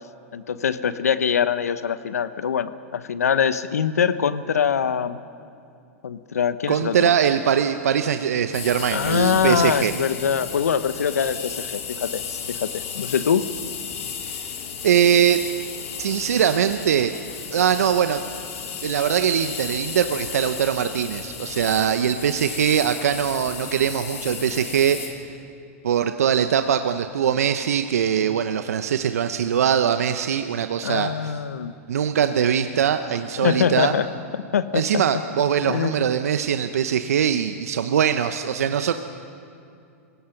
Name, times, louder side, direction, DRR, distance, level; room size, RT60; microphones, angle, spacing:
voice 1, 0.3-5.2 6.0-7.1 8.9-13.5 30.8-31.7 33.4-34.1 34.5-35.0 35.6-36.1, left 7 dB, 90° left, 14 dB, 0.9 m, -23 dB
voice 2, 6.7-9.9 14.2-14.3 14.8-15.4 16.0-17.1 17.5-18.2 18.8-25.0 25.8-31.3 31.9-33.9 34.7-38.9, right 8 dB, 80° right, 9 dB, 0.8 m, -22 dB
sound 1, 8.5-25.1, left 7 dB, 70° left, 3.7 m, -34 dB
27.0 x 17.0 x 5.9 m, 2.5 s
hypercardioid pair, 115°, 8 cm